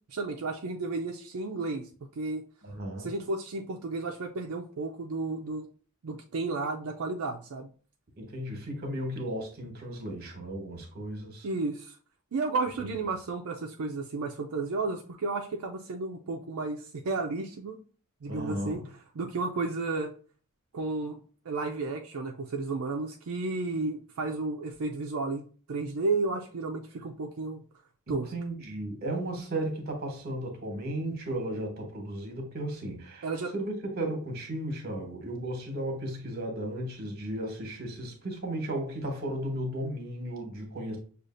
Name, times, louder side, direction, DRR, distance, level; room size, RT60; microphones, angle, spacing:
voice 1, 0.1-1.9 2.2-2.4 3.0-5.7 6.0-7.7 11.4-12.0 12.3-17.8 18.2-18.8 19.1-20.1 20.7-21.2 21.5-25.4 25.7-27.6 28.1-28.3 33.2-33.5, right 3 dB, 90° right, 0.5 m, -32 dB
voice 2, 2.6-3.1 8.2-11.5 12.8-12.9 18.3-18.8 28.3-33.3 33.5-41.0, right 1 dB, 45° right, 1.2 m, -35 dB
6.3 x 2.4 x 2.5 m
head